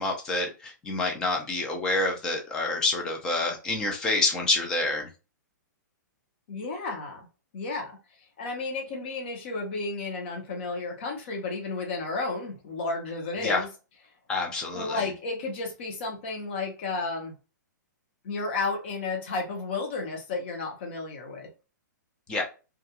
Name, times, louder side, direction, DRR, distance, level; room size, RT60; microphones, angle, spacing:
voice 1, 0.0-5.1 13.4-13.6 14.3-15.0 22.3-22.4, left 2 dB, 5° left, 0.3 m, -27 dB
voice 2, 6.5-7.3 7.5-8.0 8.4-13.7 14.7-17.3 18.2-21.5, left 3 dB, 35° left, 0.7 m, -32 dB
2.4 x 2.2 x 2.7 m
hypercardioid pair, 175°, 10 cm